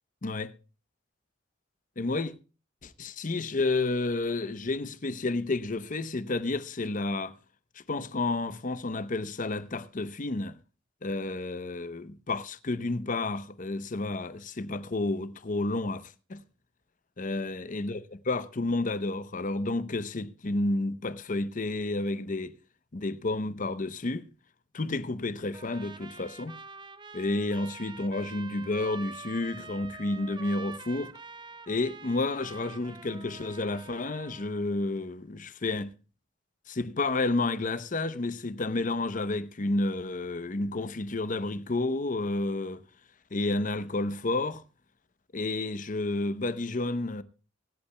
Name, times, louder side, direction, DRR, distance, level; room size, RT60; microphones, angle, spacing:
voice 1, 0.2-0.5 2.0-2.3 2.8-7.3 7.9-10.6 11.0-16.4 17.2-22.5 22.9-24.3 24.7-26.5 27.1-31.1 31.7-35.9 36.7-42.8 43.3-44.6 45.3-47.2, left 2 dB, 45° left, 0.7 m, -31 dB
Trumpet, 25.5-34.7, right 4 dB, 25° right, 0.5 m, -46 dB
24.5 x 8.6 x 2.2 m
head